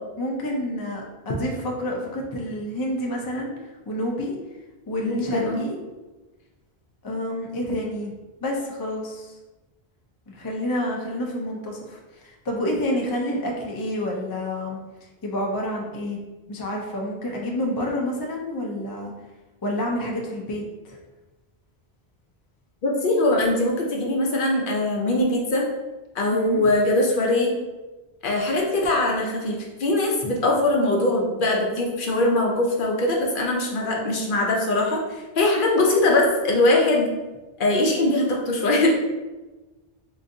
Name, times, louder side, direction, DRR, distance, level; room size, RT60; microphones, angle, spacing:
voice 1, 0.2-3.5 3.9-4.3 4.9-5.7 7.0-8.1 8.4-9.3 10.3-14.8 15.2-16.2 16.5-19.1 19.6-21.0 26.3-26.7, left 1 dB, 40° left, -1 dB, 0.3 m, -28 dB
voice 2, 5.0-5.6 22.8-25.7 26.1-27.5 28.2-37.1 37.6-38.9, left 2 dB, 60° left, -1 dB, 0.7 m, -22 dB
3.8 x 2.6 x 2.6 m, 1.1 s
omnidirectional pair, 1.1 m